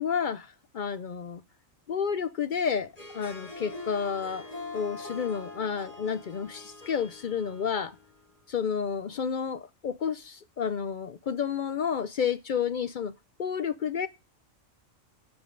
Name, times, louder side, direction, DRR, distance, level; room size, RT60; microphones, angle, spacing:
voice 1, 0.0-1.4 1.9-4.5 4.7-8.0 8.5-13.1 13.4-14.1, left 7 dB, 60° left, 0.5 m, -30 dB
Harp, 2.9-8.3, left 3 dB, 30° left, 2.2 m, -43 dB
13.0 x 5.3 x 3.8 m
omnidirectional pair, 1.4 m